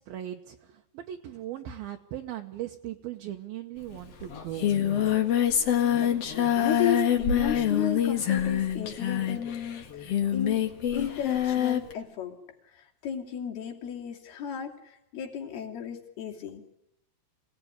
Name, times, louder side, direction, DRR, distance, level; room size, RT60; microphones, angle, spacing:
voice 1, 0.0-4.7, right 12 dB, 70° right, 4 dB, 2.6 m, -38 dB
Singing, 3.9-4.0 4.2-11.9, left 10 dB, 50° left, 2.1 m, -26 dB
voice 2, 6.0-10.6 10.9-12.4 12.7-16.6, left 7 dB, 70° left, 1 dB, 4.7 m, -34 dB
26.0 x 18.5 x 10.0 m, 0.86 s
omnidirectional pair, 4.8 m